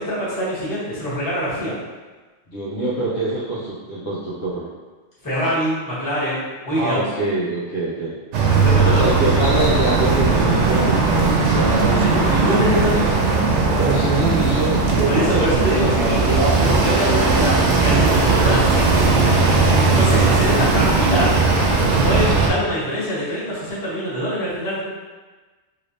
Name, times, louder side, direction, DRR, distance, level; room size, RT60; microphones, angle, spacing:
voice 1, 0.0-1.7 5.2-7.0 8.5-9.0 11.9-13.1 15.0-16.3 16.6-19.5 19.8-21.3 21.9-24.8, equal, 15° left, -11 dB, 1.2 m, -24 dB
voice 2, 2.5-4.7 6.7-8.1 8.8-12.8 13.7-16.7, right 1 dB, 70° left, -8 dB, 1.2 m, -24 dB
sound 1, 8.3-22.5, right 4 dB, 85° right, 0.9 m, -17 dB
3.2 x 3.1 x 2.7 m, 1.3 s
omnidirectional pair, 1.2 m